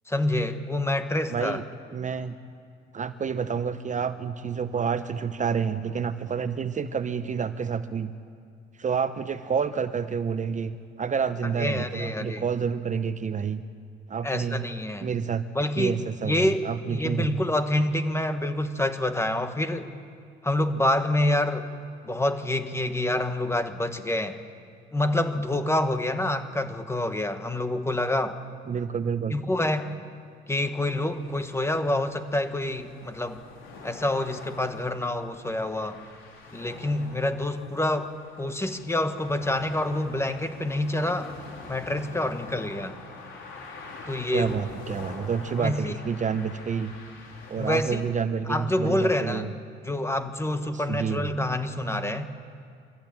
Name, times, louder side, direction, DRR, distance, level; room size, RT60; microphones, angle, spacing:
voice 1, 0.1-1.6 11.4-12.4 14.2-15.1 15.5-19.9 20.4-21.7 22.0-24.4 24.9-28.4 29.3-29.9 30.5-33.4 33.8-36.0 36.5-38.1 38.4-41.3 41.7-43.0 44.1-44.6 45.6-46.0 47.6-48.0 48.5-49.5 49.8-52.2, left 1 dB, 15° left, 8 dB, 1.5 m, -27 dB
voice 2, 1.3-1.6 1.9-2.4 2.9-8.1 8.8-13.6 14.1-14.6 15.0-15.4 15.8-17.4 28.7-29.4 44.3-46.9 47.5-49.5 50.7-51.3, right 6 dB, 40° right, 11 dB, 0.8 m, -29 dB
sound 1, 31.1-48.1, left 3 dB, 80° left, 4.2 m, -45 dB
23.5 x 15.0 x 9.0 m, 2.2 s
cardioid pair, 90°, 20 cm